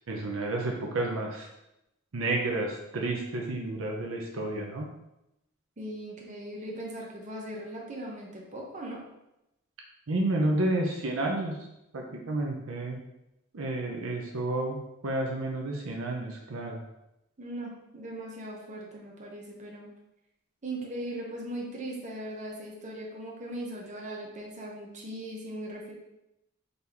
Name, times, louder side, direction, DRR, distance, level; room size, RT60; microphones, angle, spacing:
voice 1, 0.1-1.5 2.1-4.9 10.1-11.6 11.9-13.0 13.5-16.8, right 2 dB, 75° right, 1 dB, 0.6 m, -30 dB
voice 2, 5.8-9.0 17.4-19.9 20.6-25.9, right 1 dB, 35° right, -1 dB, 0.8 m, -39 dB
3.9 x 3.4 x 2.9 m, 0.87 s
head